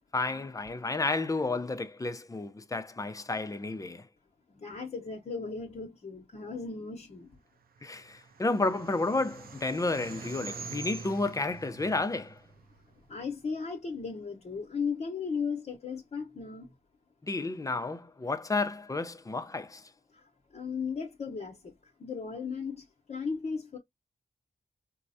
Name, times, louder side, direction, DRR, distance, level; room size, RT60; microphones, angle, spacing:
voice 1, 0.1-4.1 7.8-12.4 17.2-19.8, left 3 dB, 20° left, 0.5 m, -31 dB
voice 2, 4.5-7.4 13.1-16.7 20.1-23.8, left 5 dB, 45° left, 0.8 m, -36 dB
sound 1, 7.8-13.2, right 5 dB, 80° right, 0.6 m, -45 dB
4.5 x 2.0 x 2.5 m
wide cardioid pair, 120°, 15 cm